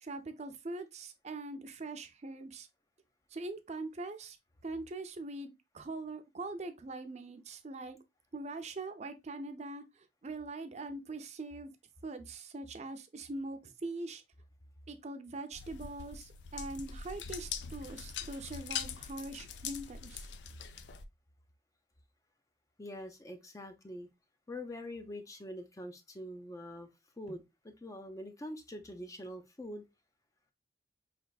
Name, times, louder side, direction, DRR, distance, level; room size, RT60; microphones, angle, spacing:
voice 1, 0.0-2.7 3.3-4.4 4.6-8.0 8.3-9.8 10.2-11.7 12.0-14.2 14.9-20.3 27.3-27.4, right 2 dB, 40° right, 0.5 m, -42 dB
sound 1, 15.5-21.0, left 7 dB, 80° left, 0.4 m, -43 dB
voice 2, 22.8-24.1 24.5-26.9 27.2-27.4 27.8-29.8, left 1 dB, 20° left, 0.5 m, -44 dB
4.9 x 3.3 x 2.2 m
head